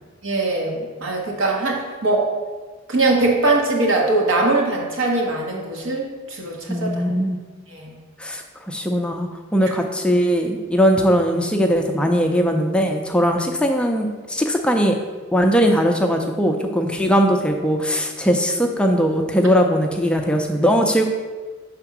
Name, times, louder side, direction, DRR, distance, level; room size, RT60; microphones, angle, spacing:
voice 1, 0.2-2.3 2.9-7.0 7.7-8.0, right 2 dB, 75° right, -1 dB, 1.3 m, -21 dB
voice 2, 6.7-7.4 8.2-15.0 15.3-21.0, equal, 5° left, 3 dB, 0.4 m, -19 dB
5.8 x 3.5 x 5.9 m, 1.4 s
head